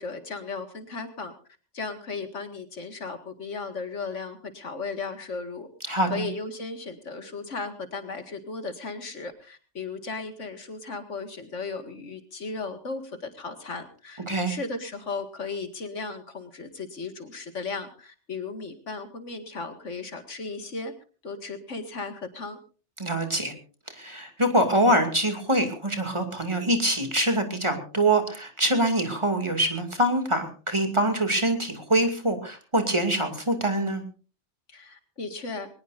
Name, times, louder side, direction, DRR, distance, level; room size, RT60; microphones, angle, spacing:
voice 1, 0.0-1.3 1.7-5.7 6.1-20.9 21.2-22.6 34.7-35.7, left 4 dB, 90° left, 7 dB, 2.3 m, -36 dB
voice 2, 5.9-6.3 14.3-14.5 23.0-23.5 23.9-34.0, right 1 dB, 25° right, 5 dB, 2.5 m, -24 dB
22.0 x 20.0 x 2.6 m, 0.38 s
omnidirectional pair, 1.2 m